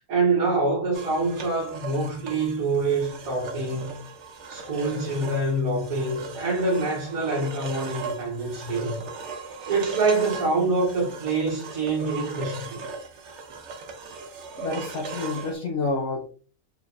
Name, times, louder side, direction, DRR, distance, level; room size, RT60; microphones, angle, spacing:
voice 1, 0.0-3.9 4.5-9.0 9.7-12.8, right 3 dB, 90° right, 1.5 m, -25 dB
sound 1, 0.9-15.6, right 4 dB, 60° right, 1.0 m, -38 dB
voice 2, 14.6-16.3, left 3 dB, 60° left, 0.9 m, -29 dB
4.9 x 2.9 x 2.5 m
omnidirectional pair, 1.5 m